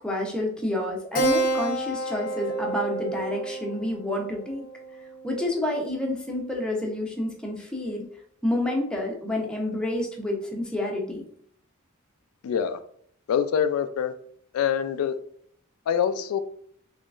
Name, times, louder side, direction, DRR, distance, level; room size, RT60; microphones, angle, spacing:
voice 1, 0.0-4.7 5.2-8.0 8.4-11.2, left 1 dB, 5° left, 0.7 m, -29 dB
Keyboard (musical), 1.1-6.1, right 2 dB, 45° left, 0.6 m, -30 dB
voice 2, 12.4-12.8 13.3-14.1 14.5-15.2 15.9-16.4, left 8 dB, 90° left, 0.3 m, -25 dB
3.7 x 3.1 x 2.4 m
head